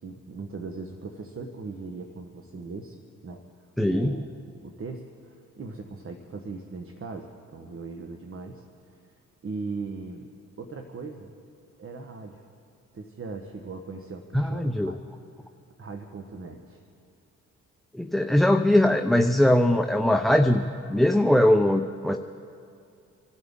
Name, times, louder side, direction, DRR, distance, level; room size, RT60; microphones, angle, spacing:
voice 1, 0.0-3.0 3.2-3.4 3.9-4.3 4.6-9.2 9.4-10.3 10.6-11.3 11.8-12.5 12.9-15.0 15.8-16.8, right 4 dB, 40° right, 4 dB, 1.2 m, -39 dB
voice 2, 3.8-4.2 14.3-14.9 17.9-22.2, left 1 dB, ahead, 5 dB, 0.6 m, -21 dB
26.5 x 12.5 x 3.7 m, 2.5 s
supercardioid pair, 65°, 33 cm